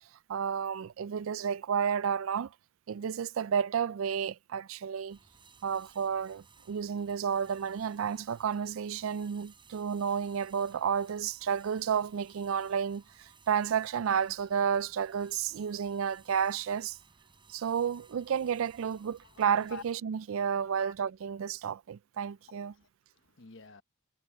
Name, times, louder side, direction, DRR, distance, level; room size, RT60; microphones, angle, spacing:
voice 1, 0.3-2.5 2.9-5.2 5.6-17.0 17.5-22.7, right 7 dB, 70° right, 0.4 m, -31 dB
sound 1, 5.1-19.9, right 4 dB, 25° right, 6.7 m, -60 dB
voice 2, 19.2-19.8 20.7-20.9 22.4-23.8, left 5 dB, 65° left, 1.1 m, -50 dB
head